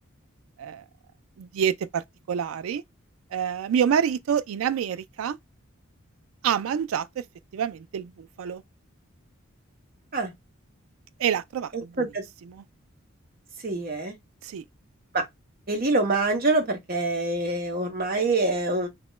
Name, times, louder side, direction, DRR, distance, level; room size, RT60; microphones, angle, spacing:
voice 1, 1.4-2.8 3.3-5.4 6.4-7.2 7.5-8.6 11.2-12.1 12.5-12.6 14.4-14.6, right 8 dB, 80° right, 0.3 m, -27 dB
voice 2, 13.6-14.2 15.1-15.3 15.7-18.9, right 2 dB, 45° right, 0.7 m, -25 dB
2.8 x 2.2 x 3.0 m
head